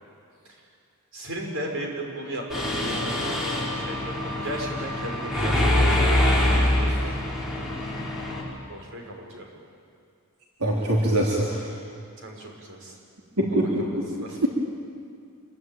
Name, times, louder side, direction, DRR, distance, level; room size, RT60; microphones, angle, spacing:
voice 1, 1.1-3.2 3.7-7.2 7.5-7.7 8.7-9.5 12.2-13.0 13.5-14.5, right 1 dB, 65° right, 1 dB, 5.6 m, -36 dB
Mechanisms, 2.5-8.4, left 1 dB, ahead, 5.9 m, -24 dB
voice 2, 10.6-11.6 13.4-13.8 14.4-14.5, right 1 dB, 85° right, -3 dB, 3.5 m, -23 dB
27.0 x 23.0 x 9.2 m, 2.3 s
head